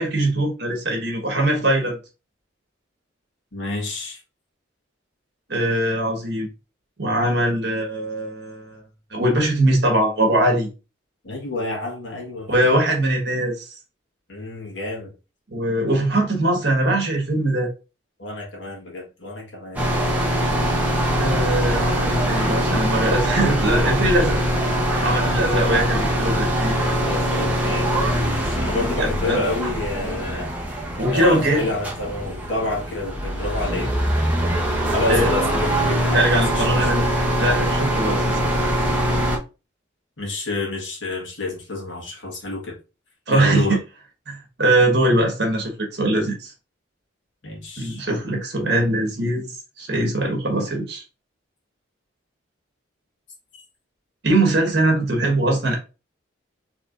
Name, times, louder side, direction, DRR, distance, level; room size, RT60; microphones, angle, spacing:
voice 1, 0.0-2.0 5.5-6.5 7.0-8.8 9.1-10.7 12.5-13.7 15.5-17.7 21.2-24.4 25.0-26.8 29.0-29.4 31.0-31.7 35.1-35.3 36.1-37.1 37.4-38.7 43.3-43.7 44.3-46.5 47.8-51.0 54.2-55.8, right 1 dB, 55° right, 1.5 m, -21 dB
voice 2, 3.5-4.2 11.2-12.6 14.3-15.1 18.2-19.9 26.8-30.6 31.1-33.9 34.9-36.9 40.2-42.8 43.3-43.8 47.4-48.0 53.5-53.6, left 2 dB, 70° left, 1.6 m, -29 dB
sound 1, 19.8-39.4, equal, 10° right, 0.9 m, -22 dB
4.7 x 3.3 x 2.6 m
head